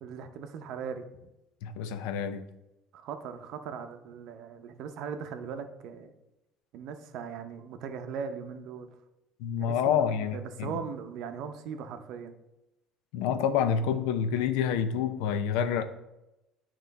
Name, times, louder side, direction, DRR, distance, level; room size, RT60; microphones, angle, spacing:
voice 1, 0.0-1.3 2.9-6.1 6.7-8.9 9.6-12.3, right 6 dB, 65° right, 0.6 m, -39 dB
voice 2, 1.6-2.4 9.4-10.8 13.1-15.8, left 8 dB, 85° left, 0.5 m, -28 dB
9.0 x 3.0 x 4.0 m
cardioid pair, 110°, 0 cm